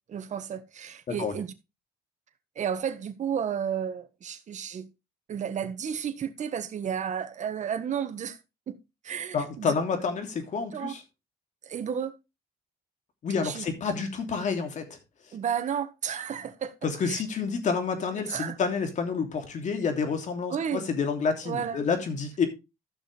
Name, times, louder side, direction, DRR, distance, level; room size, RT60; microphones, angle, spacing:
voice 1, 0.1-1.5 2.5-4.9 5.3-8.4 8.7-8.8 9.0-9.7 10.7-10.9 11.6-12.1 13.4-13.6 15.3-16.7 17.0-17.2 18.3-18.6 20.5-20.8 21.4-21.8, right 8 dB, 45° right, 1.5 m, -32 dB
voice 2, 9.3-11.0 13.2-14.8 16.8-22.4, left 5 dB, 45° left, 3.0 m, -29 dB
14.5 x 6.4 x 3.4 m
cardioid pair, 110°, 17 cm